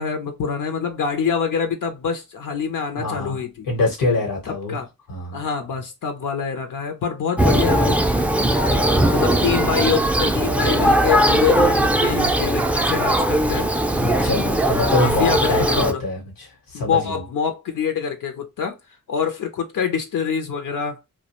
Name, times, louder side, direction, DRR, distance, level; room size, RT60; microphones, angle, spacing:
voice 1, 0.0-3.7 4.5-4.9 5.3-8.0 9.1-13.7 14.9-16.0 16.7-18.8 19.1-21.0, left 7 dB, 70° left, 0.5 m, -25 dB
voice 2, 3.0-4.8 5.1-5.4 8.7-8.8 14.0-17.2, left 2 dB, 85° left, 1.0 m, -24 dB
Thunder, 7.4-15.9, right 1 dB, 5° right, 0.3 m, -19 dB
2.3 x 2.1 x 2.8 m
cardioid pair, 65°, 33 cm